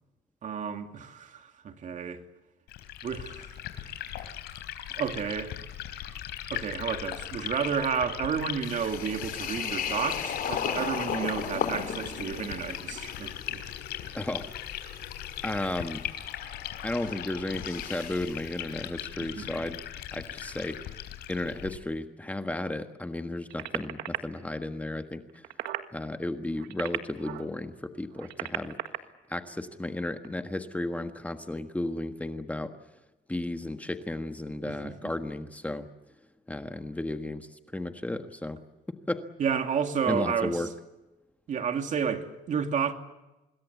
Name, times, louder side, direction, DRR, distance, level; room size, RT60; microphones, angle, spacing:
voice 1, 0.4-2.2 3.0-3.5 4.9-5.5 6.5-13.6 19.3-19.5 34.7-35.1 39.4-40.7 41.5-42.9, right 7 dB, 45° right, 2.6 m, -31 dB
Liquid, 2.7-21.8, left 12 dB, 80° left, 3.9 m, -39 dB
sound 1, 8.6-18.4, left 8 dB, 60° left, 4.5 m, -36 dB
voice 2, 14.1-14.5 15.4-16.0 16.8-19.8 20.1-20.8 21.3-25.4 25.9-28.7 29.3-32.7 33.3-35.9 36.5-38.6 39.1-39.2 40.1-40.7, left 1 dB, 10° left, 1.5 m, -34 dB
sound 2, 23.5-24.2 25.3-25.9 26.5-27.5 28.1-29.0 30.2-30.3, right 14 dB, 90° right, 1.7 m, -35 dB
26.0 x 21.0 x 8.3 m
cardioid pair, 110°, 17 cm